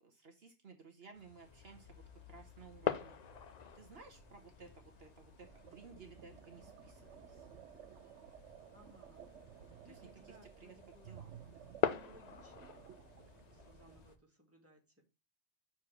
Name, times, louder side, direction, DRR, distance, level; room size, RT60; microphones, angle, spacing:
voice 1, 0.0-2.0 2.3-3.2 3.7-7.5 9.8-11.3, right 4 dB, 65° right, 3 dB, 1.3 m, -57 dB
sound 1, 1.1-14.2, left 7 dB, 45° left, 0.6 m, -44 dB
sound 2, 1.4-14.2, left 3 dB, 70° left, 2.1 m, -62 dB
sound 3, 5.4-14.0, right 10 dB, 85° right, 0.9 m, -56 dB
voice 2, 8.7-9.2 9.6-11.2 11.9-13.1 13.5-15.0, equal, 10° right, 0 dB, 2.0 m, -63 dB
6.5 x 4.5 x 5.8 m, 0.28 s
omnidirectional pair, 1.2 m